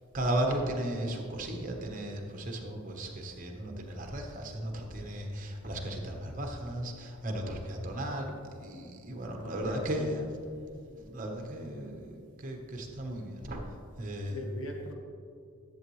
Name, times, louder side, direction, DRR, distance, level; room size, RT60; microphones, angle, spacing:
voice 1, 0.1-10.2 10.9-13.6 14.0-14.4, right 1 dB, 40° right, 2 dB, 1.0 m, -35 dB
voice 2, 9.3-10.1 14.3-14.9, left 1 dB, 65° left, 1 dB, 1.3 m, -41 dB
11.0 x 7.1 x 3.1 m, 2.4 s
head